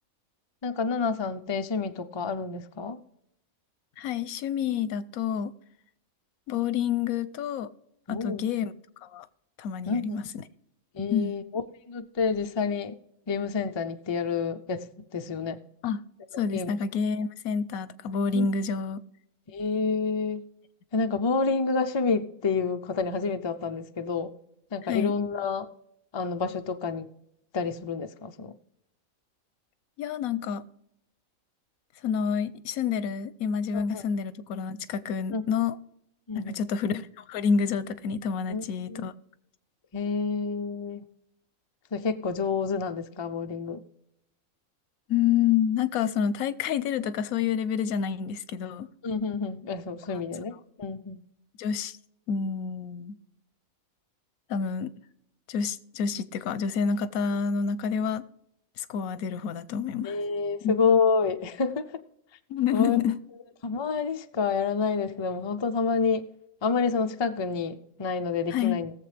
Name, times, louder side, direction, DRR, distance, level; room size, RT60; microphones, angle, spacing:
voice 1, 0.6-3.0 8.1-8.4 9.9-10.2 10.9-11.4 11.9-13.0 13.3-15.6 16.3-16.7 18.3-18.5 19.5-20.4 20.9-24.3 24.7-25.7 26.1-27.1 27.5-28.5 33.7-34.0 35.3-35.4 36.3-36.6 38.5-39.1 39.9-41.0 41.9-43.8 49.0-51.2 60.0-61.9 62.7-63.0 63.6-66.3 66.6-68.9, left 5 dB, 45° left, 0.3 m, -28 dB
voice 2, 4.0-5.5 6.5-7.7 8.1-8.7 9.0-9.3 9.6-10.2 11.1-11.3 15.8-16.0 16.4-19.0 24.9-25.2 30.0-30.6 32.0-35.8 36.4-39.1 45.1-48.9 51.6-52.0 52.3-53.2 54.5-54.9 55.5-58.2 58.8-60.2 60.6-60.8 62.5-63.2 68.5-68.8, left 7 dB, 90° left, 1.1 m, -28 dB
19.5 x 7.3 x 3.3 m
omnidirectional pair, 1.5 m